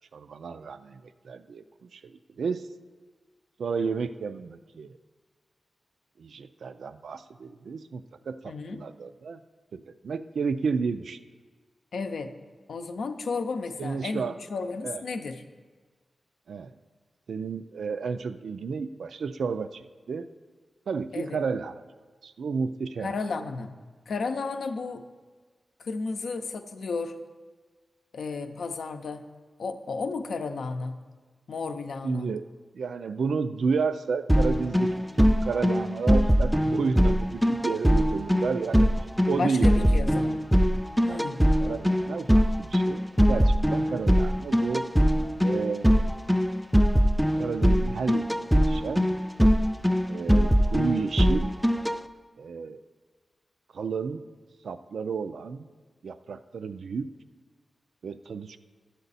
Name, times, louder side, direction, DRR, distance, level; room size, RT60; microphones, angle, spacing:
voice 1, 0.1-2.7 3.6-5.0 6.2-9.4 9.7-11.2 13.8-14.4 14.8-15.0 16.5-16.7 17.3-20.3 20.9-21.8 22.2-23.1 32.0-32.5 32.7-38.9 39.3-40.2 41.1-43.0 43.3-44.8 45.4-45.9 47.3-48.3 48.7-49.1 50.1-51.5 52.4-52.8 53.7-54.2 54.6-55.7 56.0-57.1 58.0-58.6, right 5 dB, 85° right, 12 dB, 0.4 m, -32 dB
voice 2, 8.5-8.8 11.9-12.3 12.7-15.4 21.1-21.4 23.0-23.7 24.1-25.1 25.8-27.2 28.1-29.2 29.6-31.0 31.5-32.3 39.4-40.4 41.1-41.4, left 4 dB, 85° left, 7 dB, 0.6 m, -33 dB
sound 1, 34.3-52.0, equal, ahead, 0.3 m, -22 dB
12.0 x 7.9 x 4.1 m, 1.4 s
wide cardioid pair, 105°, 0 cm